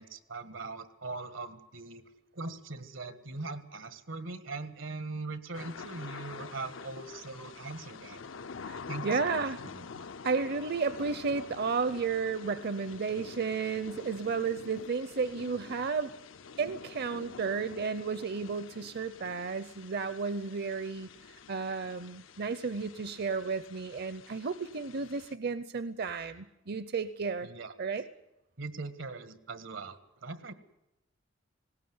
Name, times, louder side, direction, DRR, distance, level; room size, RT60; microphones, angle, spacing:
voice 1, 0.0-2.0 2.3-8.2 8.9-9.4 9.7-10.0 27.4-27.7 28.6-30.5, right 3 dB, 85° right, 12 dB, 1.7 m, -41 dB
sound 1, 5.5-25.3, left 5 dB, 90° left, 0.7 m, -47 dB
voice 2, 8.6-9.6 10.2-16.1 16.6-21.1 21.5-27.5 27.8-28.0, right 5 dB, 55° right, 14 dB, 0.7 m, -33 dB
19.5 x 17.5 x 9.6 m, 0.90 s
head